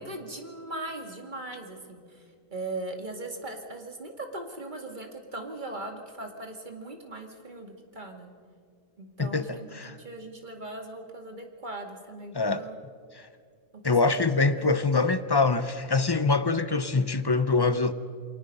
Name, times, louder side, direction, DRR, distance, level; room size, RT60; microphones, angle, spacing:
voice 1, 0.0-8.3 9.0-12.8 13.8-14.3 14.6-14.7, right 2 dB, 35° right, 2.3 m, -39 dB
voice 2, 9.2-9.9 12.3-12.7 13.1-13.3 13.8-17.9, left 3 dB, 35° left, 0.4 m, -24 dB
29.0 x 23.0 x 5.5 m
omnidirectional pair, 1.5 m